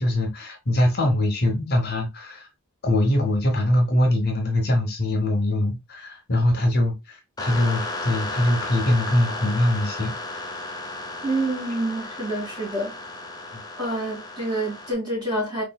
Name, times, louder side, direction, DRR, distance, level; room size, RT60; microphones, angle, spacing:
voice 1, 0.0-2.5 2.8-10.1 13.5-13.6, left 1 dB, 45° left, 0.9 m, -22 dB
sound 1, 7.4-14.9, left 2 dB, 20° left, 0.5 m, -34 dB
voice 2, 11.2-13.0 13.8-15.6, right 1 dB, 20° right, 2.2 m, -27 dB
4.4 x 2.7 x 2.2 m
head